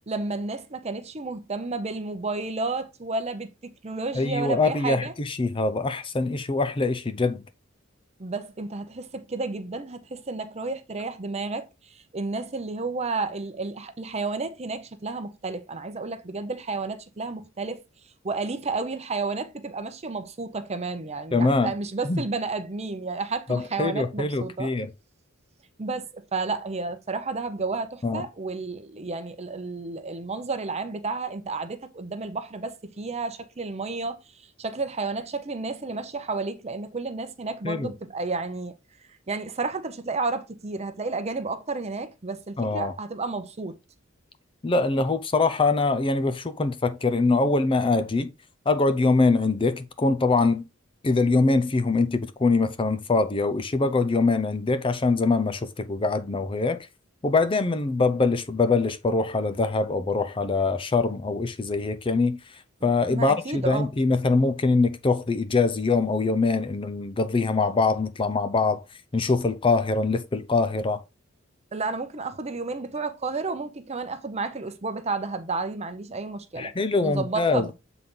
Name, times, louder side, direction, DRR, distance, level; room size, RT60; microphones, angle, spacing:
voice 1, 0.1-5.1 8.2-11.7 12.1-17.8 18.2-24.7 25.8-34.2 34.6-38.7 39.3-43.8 63.1-63.9 71.7-76.7 77.0-77.7, right 3 dB, 30° right, 0.7 m, -31 dB
voice 2, 4.1-7.4 21.3-21.7 22.0-22.2 23.5-24.9 28.0-28.3 37.6-37.9 42.6-42.9 44.6-48.3 48.7-50.7 51.0-56.9 57.2-68.8 69.1-71.0 76.6-77.7, left 3 dB, 25° left, 0.5 m, -23 dB
7.4 x 4.0 x 3.7 m
head